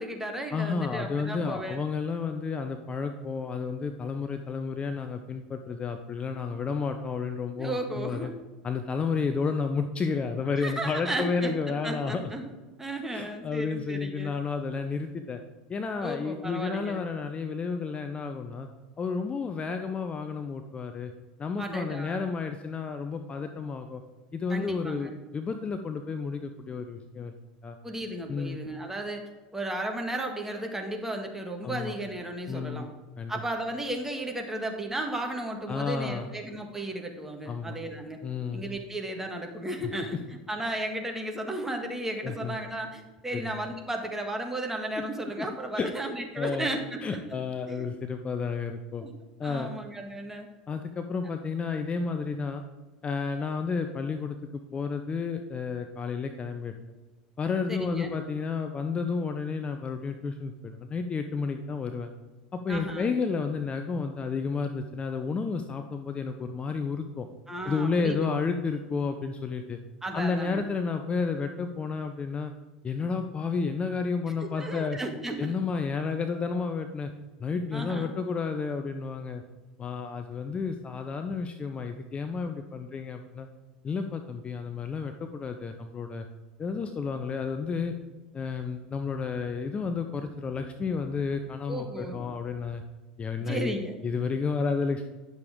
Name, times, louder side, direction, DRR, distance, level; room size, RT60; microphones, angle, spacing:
voice 1, 0.0-1.8 7.6-8.3 10.6-11.5 11.8-12.5 12.8-14.3 16.0-17.0 21.6-22.2 24.5-25.1 27.8-29.2 29.5-32.9 33.3-38.2 38.5-47.2 47.7-47.9 49.0-49.1 49.4-50.5 57.7-58.2 62.7-63.1 67.5-68.3 70.0-70.6 74.4-75.5 77.7-78.1 91.7-92.2 93.4-94.0, right 1 dB, 10° right, 3 dB, 1.6 m, -34 dB
voice 2, 0.5-8.3 8.6-12.2 13.1-15.4 15.7-18.7 19.0-21.1 21.4-24.0 24.3-27.3 27.6-27.8 28.3-28.6 31.6-31.9 32.5-32.9 33.2-33.3 35.7-36.3 37.5-37.8 38.2-38.6 42.2-42.6 43.3-43.5 45.4-45.5 45.8-45.9 46.3-46.7 47.0-49.0 49.4-49.7 50.7-52.6 53.0-56.7 57.4-62.1 62.5-67.3 67.6-69.8 70.1-72.5 72.8-75.0 75.4-77.1 77.4-79.4 79.8-83.5 83.8-86.2 86.6-87.9 88.3-92.8 93.2-93.7 94.0-95.1, left 5 dB, 25° left, 7 dB, 0.7 m, -31 dB
10.5 x 6.8 x 3.6 m, 1.3 s
hypercardioid pair, 85°, 4 cm